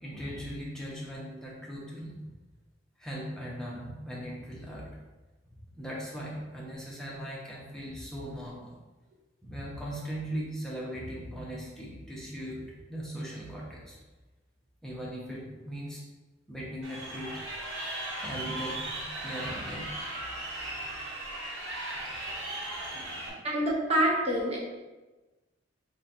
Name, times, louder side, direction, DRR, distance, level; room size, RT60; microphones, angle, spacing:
voice 1, 0.0-2.4 3.0-4.9 5.5-8.7 9.4-14.0 14.8-16.0 16.5-17.4 18.1-19.9 20.8-20.9, equal, 5° left, -5 dB, 0.7 m, -39 dB
Crowd, 16.8-23.3, right 1 dB, 75° right, 1.0 m, -37 dB
voice 2, 23.4-24.6, right 1 dB, 30° right, -3 dB, 0.5 m, -26 dB
3.8 x 2.2 x 4.1 m, 1.2 s
head